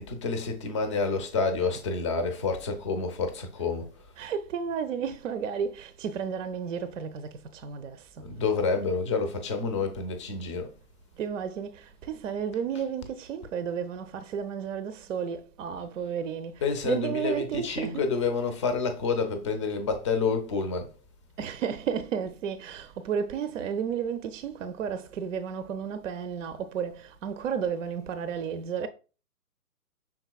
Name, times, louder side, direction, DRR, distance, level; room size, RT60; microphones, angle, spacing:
voice 1, 0.0-3.9 8.2-10.7 16.6-20.9, left 4 dB, 20° left, 0.5 m, -28 dB
voice 2, 4.2-8.3 11.2-18.1 21.4-28.9, right 7 dB, 60° right, 0.6 m, -32 dB
5.8 x 3.8 x 2.3 m
hypercardioid pair, 135°, 45 cm